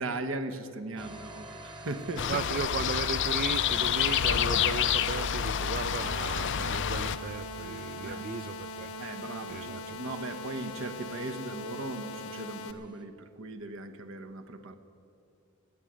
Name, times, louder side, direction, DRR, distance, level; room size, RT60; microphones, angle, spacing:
voice 1, 0.0-2.6 8.0-8.3 9.0-14.7, right 2 dB, 65° right, 1.0 m, -38 dB
sound 1, 1.0-13.0, right 1 dB, 25° right, 1.2 m, -50 dB
sound 2, 2.2-7.2, left 9 dB, 55° left, 0.5 m, -28 dB
voice 2, 2.3-8.9 9.5-10.0, right 5 dB, 45° right, 0.4 m, -36 dB
sound 3, 3.7-12.7, left 1 dB, 80° left, 1.2 m, -41 dB
18.5 x 7.6 x 9.4 m
head